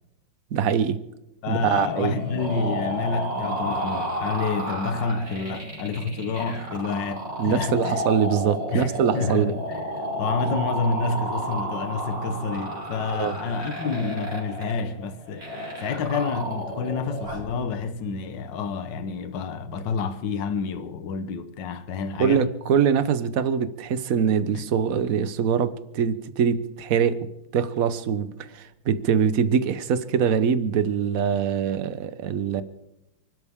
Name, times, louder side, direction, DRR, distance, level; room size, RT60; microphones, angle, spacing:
voice 1, 0.5-1.0 1.5-2.2 7.4-9.6 13.1-13.4 22.2-32.6, right 7 dB, 50° right, 1.2 m, -23 dB
voice 2, 1.4-8.0 8.7-9.9 10.2-15.5 15.8-22.5 24.5-24.6, left 4 dB, 65° left, 1.7 m, -29 dB
sound 1, 1.6-17.5, right 1 dB, 30° right, 4.6 m, -32 dB
28.5 x 12.5 x 3.6 m
omnidirectional pair, 2.2 m